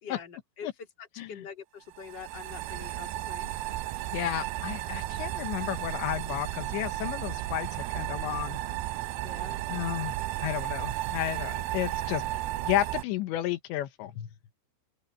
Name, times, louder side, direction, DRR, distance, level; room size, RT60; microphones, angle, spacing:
voice 1, 0.0-0.7 1.0-3.5 9.2-9.6, left 6 dB, 25° left, 3.2 m, -44 dB
sound 1, 1.9-13.0, right 15 dB, 90° right, 2.2 m, -34 dB
voice 2, 4.1-8.6 9.7-12.2 12.6-14.3, left 13 dB, 85° left, 3.5 m, -32 dB
open air
omnidirectional pair, 5.0 m